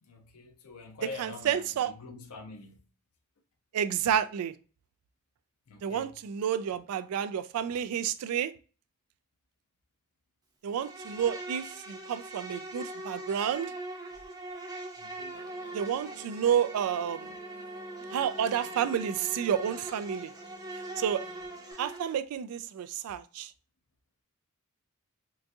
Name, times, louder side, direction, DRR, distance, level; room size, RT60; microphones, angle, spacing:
voice 1, 0.0-2.8 5.7-6.2 15.0-15.4, left 3 dB, 90° left, 0.6 m, -45 dB
voice 2, 1.2-1.9 3.7-4.5 5.8-8.5 10.6-13.7 15.7-17.3 18.1-20.3 21.0-21.2 21.8-23.5, right 8 dB, 75° right, 0.3 m, -30 dB
Insect, 10.7-22.1, right 2 dB, 15° right, 0.7 m, -42 dB
Musical instrument, 15.3-21.7, equal, 40° left, 0.6 m, -53 dB
3.8 x 2.6 x 2.3 m
head